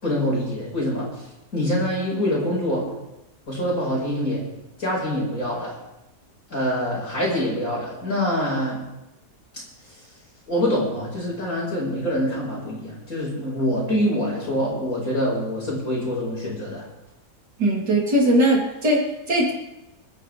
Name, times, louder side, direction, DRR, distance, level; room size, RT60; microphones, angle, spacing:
voice 1, 0.0-1.3 1.5-2.9 3.5-4.4 4.8-5.7 6.5-8.8 10.5-16.8, equal, 55° left, -4 dB, 6.0 m, -25 dB
voice 2, 17.6-19.6, right 1 dB, 90° right, -3 dB, 4.2 m, -20 dB
27.0 x 10.0 x 3.5 m, 0.94 s
omnidirectional pair, 1.7 m